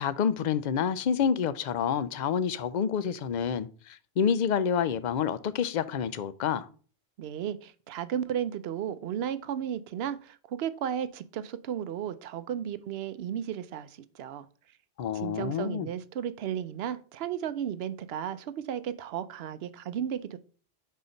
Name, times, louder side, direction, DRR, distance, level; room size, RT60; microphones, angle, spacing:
voice 1, 0.0-6.7 15.0-15.9, left 7 dB, 55° left, 0.5 m, -28 dB
voice 2, 7.2-14.5 15.1-20.4, right 9 dB, 75° right, 0.8 m, -34 dB
5.7 x 4.1 x 5.0 m
omnidirectional pair, 1.1 m